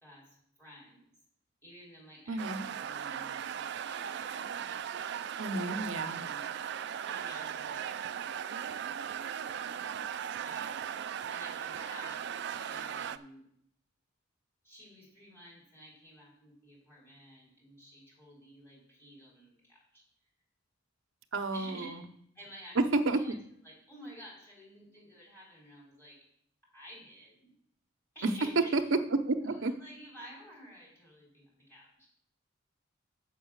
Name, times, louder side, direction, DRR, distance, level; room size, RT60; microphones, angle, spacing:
voice 1, 0.0-1.0 1.6-4.5 6.0-6.5 7.0-8.2 10.4-10.9 11.2-12.2 12.6-13.5 14.6-20.0 21.5-22.0 22.3-22.8 23.1-23.4 23.6-26.3 26.7-27.5 28.1-28.7 29.4-32.1, equal, 15° left, -6 dB, 4.2 m, -52 dB
voice 2, 2.3-2.7 5.4-6.2 21.3-22.0 22.9-23.4 28.2-28.3 28.7-29.0 29.3-29.7, right 2 dB, 75° right, 7 dB, 0.8 m, -31 dB
sound 1, 2.4-13.2, right 8 dB, 60° right, 0.4 m, -38 dB
7.1 x 5.9 x 7.2 m, 0.70 s
head